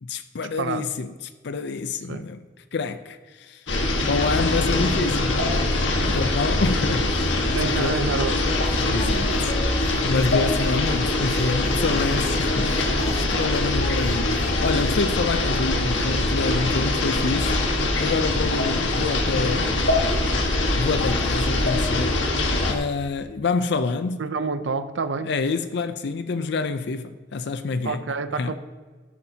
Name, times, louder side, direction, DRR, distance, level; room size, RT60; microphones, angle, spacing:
voice 1, 0.0-1.1 1.4-2.4 2.7-3.7 4.1-8.0 8.9-9.5 10.0-17.6 18.0-19.9 20.7-22.3 22.7-24.2 25.2-28.0 28.4-28.5, left 4 dB, 65° left, 0.5 m, -27 dB
sound 1, 3.7-22.7, left 2 dB, 90° left, 1.5 m, -23 dB
voice 2, 7.5-8.6 24.2-25.3 27.8-28.5, right 4 dB, 75° right, 0.6 m, -28 dB
sound 2, 7.9-14.8, left 1 dB, 50° left, 1.3 m, -37 dB
13.5 x 11.0 x 2.8 m
head